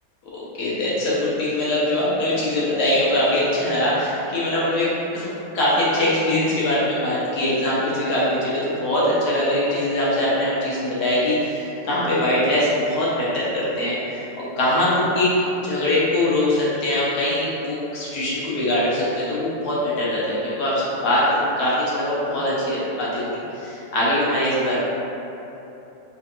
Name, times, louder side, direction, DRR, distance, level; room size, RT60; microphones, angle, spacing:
voice 1, 0.3-14.2 14.6-15.3 15.6-24.8, left 1 dB, 70° left, -8 dB, 1.1 m, -22 dB
3.4 x 2.8 x 2.4 m, 3.0 s
omnidirectional pair, 1.9 m